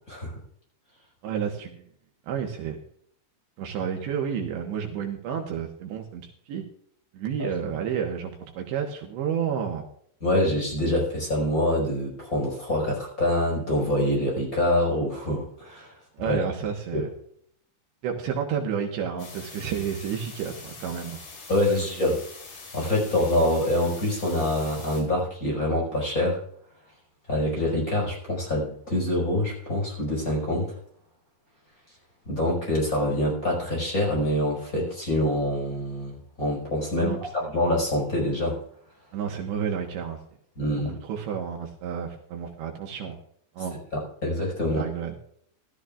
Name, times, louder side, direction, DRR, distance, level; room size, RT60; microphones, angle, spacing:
voice 1, 1.2-1.8 2.3-2.8 3.6-6.6 7.1-9.9 16.2-17.1 18.0-21.2 21.7-22.1 37.0-37.2 39.1-40.2 41.0-43.2 43.5-43.8 44.7-45.1, right 8 dB, 75° right, 2 dB, 3.3 m, -31 dB
voice 2, 10.2-15.9 16.2-16.4 16.9-17.1 21.5-22.2 22.7-26.4 27.3-30.8 32.2-38.6 40.6-41.0 43.9-44.8, left 1 dB, 20° left, -3 dB, 5.0 m, -25 dB
sound 1, 19.2-25.0, left 4 dB, 50° left, 5.2 m, -44 dB
17.0 x 13.0 x 2.5 m, 0.64 s
omnidirectional pair, 5.6 m